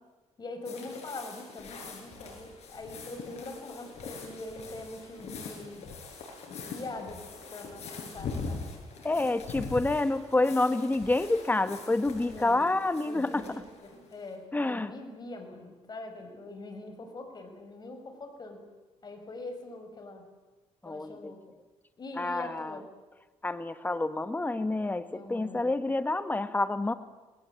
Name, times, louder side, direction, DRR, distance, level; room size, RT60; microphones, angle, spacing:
voice 1, 0.4-5.9 6.5-8.7 9.6-9.7 12.2-12.7 13.0-18.6 19.0-20.3 20.8-21.4 22.0-22.9 25.1-25.9, left 2 dB, 35° left, 5 dB, 6.0 m, -43 dB
sound 1, 0.6-14.3, left 4 dB, 60° left, 7.8 m, -43 dB
voice 2, 9.0-13.4 14.5-14.9 20.8-21.3 22.2-22.8 23.4-26.9, left 2 dB, 15° left, 11 dB, 1.6 m, -28 dB
29.0 x 20.0 x 8.5 m, 1.2 s
cardioid pair, 95°, 12 cm